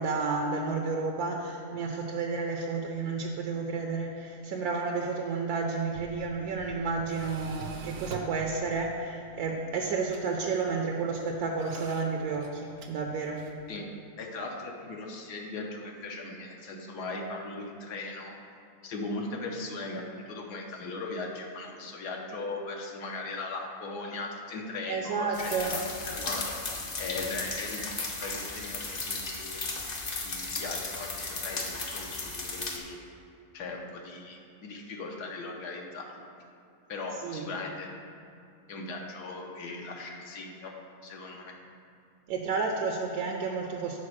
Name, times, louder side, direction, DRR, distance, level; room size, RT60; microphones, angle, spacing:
voice 1, 0.0-13.4 24.9-25.8 37.2-37.5 42.3-44.0, right 4 dB, 75° right, 1 dB, 1.2 m, -31 dB
Tools, 5.7-13.7, right 4 dB, 60° right, 0.6 m, -47 dB
voice 2, 14.2-18.3 18.8-26.5 27.0-29.6 30.2-33.0 33.5-36.1 36.9-37.9 38.7-40.7 41.0-41.6, left 3 dB, 80° left, 0 dB, 1.4 m, -38 dB
sound 1, 25.3-32.8, left 3 dB, 45° left, 0.5 m, -35 dB
7.5 x 4.1 x 6.1 m, 2.6 s
omnidirectional pair, 1.7 m